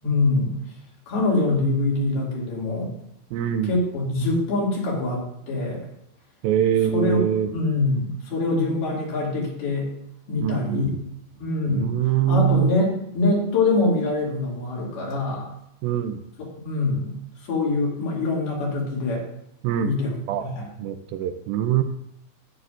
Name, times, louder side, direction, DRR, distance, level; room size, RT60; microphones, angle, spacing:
voice 1, 0.0-0.6 1.1-2.9 3.6-5.8 6.9-7.2 7.5-9.9 10.3-10.9 11.4-11.9 12.3-15.5 16.6-19.2 19.8-20.6, left 2 dB, 80° left, -4 dB, 4.4 m, -24 dB
voice 2, 3.3-3.8 6.4-7.5 10.4-11.0 11.7-12.7 15.8-16.2 19.6-19.9 20.3-20.5 20.8-21.8, right 10 dB, 80° right, 8 dB, 2.2 m, -23 dB
13.5 x 9.4 x 2.5 m, 0.77 s
omnidirectional pair, 4.4 m